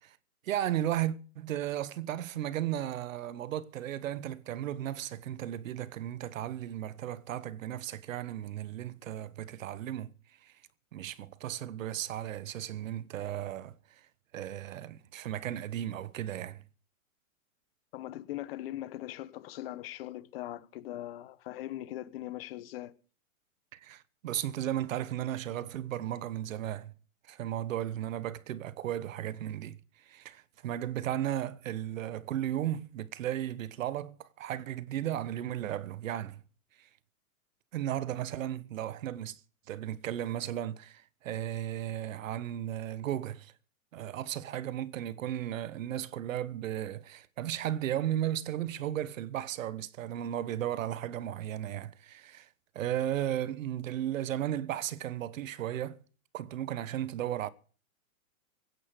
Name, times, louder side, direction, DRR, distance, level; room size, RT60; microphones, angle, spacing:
voice 1, 0.4-10.1 10.4-10.5 10.9-13.7 14.3-16.6 23.7-26.9 27.3-36.4 36.8-36.9 37.7-39.4 39.7-43.5 43.9-52.5 52.7-56.0 56.3-57.5, right 12 dB, 65° right, 1.1 m, -35 dB
voice 2, 17.9-23.0, left 14 dB, 45° left, 1.0 m, -40 dB
16.5 x 9.5 x 6.7 m
hypercardioid pair, 155°, 42 cm